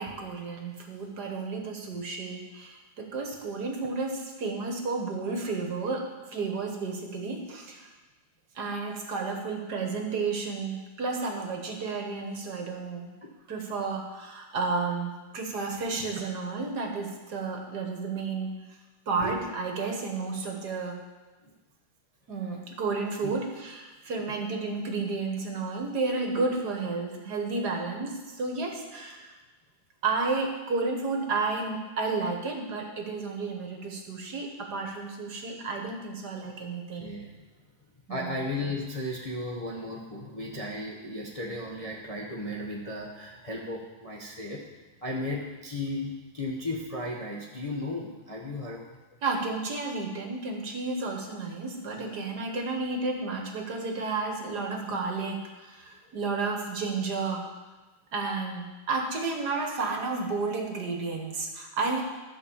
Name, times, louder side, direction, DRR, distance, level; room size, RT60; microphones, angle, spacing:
voice 1, 0.0-7.9 8.6-13.1 13.5-18.5 19.1-21.0 22.3-29.3 30.0-37.1 38.1-38.4 49.2-57.4 58.1-62.0, right 4 dB, 55° right, 2 dB, 1.7 m, -32 dB
voice 2, 36.9-37.3 38.1-44.6 45.0-48.9 51.9-52.1, left 2 dB, 25° left, -3 dB, 0.9 m, -35 dB
13.0 x 5.3 x 7.1 m, 1.2 s
omnidirectional pair, 2.2 m